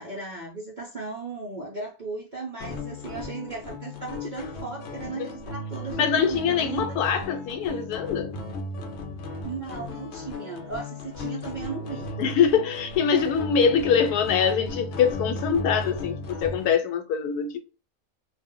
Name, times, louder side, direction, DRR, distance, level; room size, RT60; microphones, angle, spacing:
voice 1, 0.0-7.2 9.4-12.1, right 4 dB, 60° right, 0.5 m, -36 dB
sound 1, 2.6-16.7, left 1 dB, 60° left, 0.7 m, -36 dB
voice 2, 6.0-8.4 12.2-17.6, left 7 dB, 85° left, 1.1 m, -24 dB
2.5 x 2.1 x 3.6 m
omnidirectional pair, 1.6 m